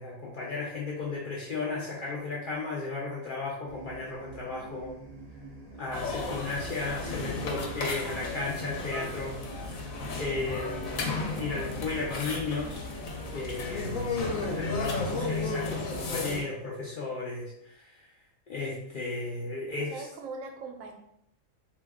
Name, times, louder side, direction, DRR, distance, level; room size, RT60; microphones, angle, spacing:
voice 1, 0.0-5.0 5.8-9.8 10.2-12.9 13.3-18.1 18.5-20.0, left 3 dB, 60° left, -5 dB, 0.5 m, -35 dB
sound 1, 3.6-16.1, right 3 dB, 45° right, 0.5 m, -45 dB
sound 2, 5.9-16.4, left 3 dB, 85° left, 1.0 m, -34 dB
voice 2, 11.4-11.7 19.9-20.9, right 3 dB, 80° right, 3 dB, 1.0 m, -41 dB
2.6 x 2.2 x 3.4 m, 0.75 s
omnidirectional pair, 1.4 m